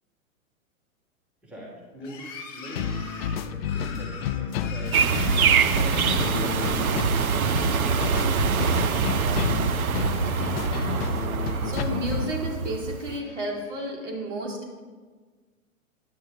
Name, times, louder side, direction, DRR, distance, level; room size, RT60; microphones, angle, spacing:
voice 1, 1.4-6.9 7.6-10.2, equal, 5° right, -5 dB, 1.9 m, -42 dB
sound 1, 2.0-7.1 7.4-8.2 8.6-9.5 9.8-11.0 11.4-12.4 12.9-13.9, left 4 dB, 30° left, 1.3 m, -45 dB
sound 2, 2.8-12.3, left 8 dB, 45° left, 0.4 m, -31 dB
sound 3, 4.9-13.2, right 6 dB, 80° right, 0.7 m, -24 dB
voice 2, 11.6-14.8, right 1 dB, 55° right, 0 dB, 2.5 m, -32 dB
9.4 x 8.8 x 3.7 m, 1.4 s
hypercardioid pair, 125°, 42 cm